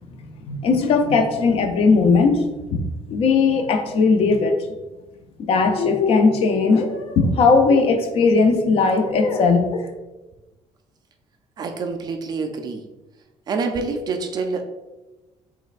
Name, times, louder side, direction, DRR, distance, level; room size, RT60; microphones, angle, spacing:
voice 1, 0.4-4.6 5.4-9.9, left 4 dB, 50° left, 6 dB, 0.5 m, -18 dB
voice 2, 11.6-12.9 13.5-14.7, right 4 dB, 35° right, 5 dB, 0.3 m, -26 dB
5.2 x 3.3 x 2.4 m, 1.1 s
cardioid pair, 180°, 13 cm